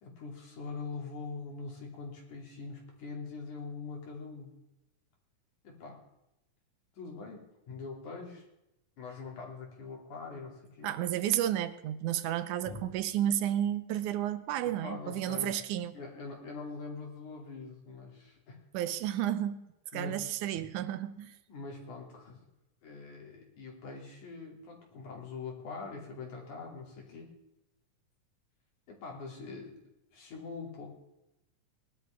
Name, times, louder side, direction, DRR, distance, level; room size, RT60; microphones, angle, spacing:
voice 1, 0.0-4.5 5.6-6.0 6.9-8.5 9.0-10.9 12.7-12.8 14.8-15.6 15.9-18.6 19.9-20.2 20.6-20.7 21.5-22.4 22.8-27.3 28.9-29.8 30.1-30.9, left 4 dB, 70° left, 0 dB, 4.3 m, -43 dB
voice 2, 10.8-16.0 18.7-19.7 19.9-21.4, right 11 dB, 80° right, 12 dB, 2.1 m, -32 dB
19.5 x 12.0 x 3.6 m, 0.88 s
omnidirectional pair, 3.6 m